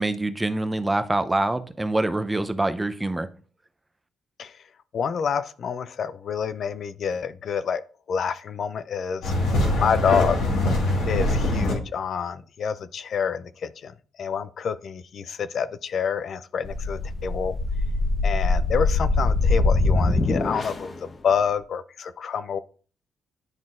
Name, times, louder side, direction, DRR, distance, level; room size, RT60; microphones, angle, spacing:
voice 1, 0.0-3.3, right 2 dB, 15° right, 9 dB, 0.6 m, -25 dB
voice 2, 4.9-7.8 8.1-9.3 9.8-10.5 11.1-13.9 14.2-17.5 18.2-22.6, left 7 dB, 55° left, 14 dB, 0.3 m, -28 dB
sound 1, 9.2-11.7, left 1 dB, 90° left, 2.0 m, -23 dB
sound 2, 16.6-21.0, left 2 dB, 35° left, 0.8 m, -23 dB
10.5 x 3.8 x 2.5 m, 0.41 s
cardioid pair, 90°, 0 cm